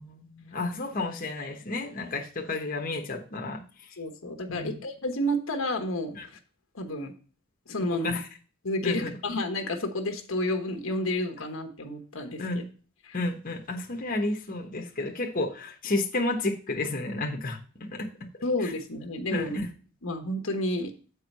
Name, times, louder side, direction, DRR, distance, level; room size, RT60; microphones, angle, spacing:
voice 1, 0.0-3.6 4.5-4.8 6.1-6.3 7.8-8.2 8.8-9.1 12.4-12.6 13.1-17.6 17.9-18.1 18.6-18.7 19.3-19.7, left 2 dB, 40° left, 2 dB, 1.2 m, -31 dB
voice 2, 4.0-6.1 6.7-7.1 7.7-8.1 8.6-12.4 13.0-13.2 18.4-19.6 20.0-20.9, left 1 dB, 75° left, 5 dB, 1.3 m, -30 dB
8.5 x 4.7 x 5.4 m, 0.38 s
head